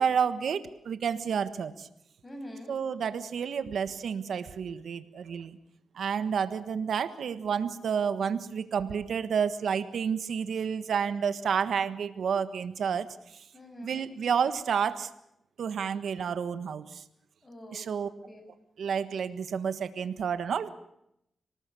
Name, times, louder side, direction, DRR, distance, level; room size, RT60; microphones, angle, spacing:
voice 1, 0.0-1.9 2.7-5.6 5.9-13.1 13.8-15.1 15.6-17.0 17.7-18.1 18.8-20.7, right 7 dB, 75° right, 12 dB, 1.4 m, -30 dB
voice 2, 2.2-2.8 13.5-14.1 17.4-18.4, equal, 25° left, 4 dB, 7.9 m, -45 dB
25.5 x 18.5 x 7.0 m, 0.77 s
cardioid pair, 95°, 0 cm